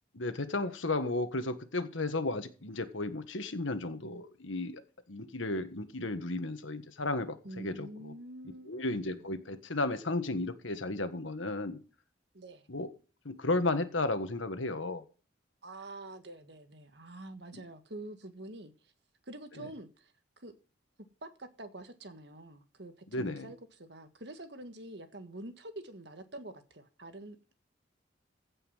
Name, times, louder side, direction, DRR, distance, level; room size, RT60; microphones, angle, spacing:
voice 1, 0.1-4.8 5.1-8.1 8.7-11.8 12.7-12.9 13.2-15.0 17.5-17.6 23.1-23.5, left 2 dB, 85° left, 1.6 m, -34 dB
voice 2, 7.4-8.8 9.1-9.3 12.3-12.7 15.6-18.9 19.2-20.5 21.2-27.5, right 1 dB, 60° right, 1.6 m, -47 dB
15.5 x 5.6 x 5.7 m
head